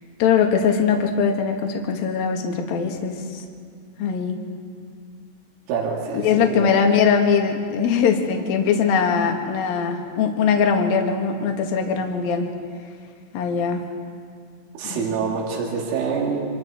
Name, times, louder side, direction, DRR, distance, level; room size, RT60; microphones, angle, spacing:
voice 1, 0.2-3.4 4.0-4.4 6.1-12.5 13.3-13.8 14.8-15.3, left 6 dB, 60° left, 3 dB, 2.9 m, -21 dB
voice 2, 5.7-6.8 14.8-16.5, right 5 dB, 70° right, -2 dB, 5.2 m, -26 dB
30.0 x 26.0 x 4.5 m, 2.1 s
omnidirectional pair, 5.8 m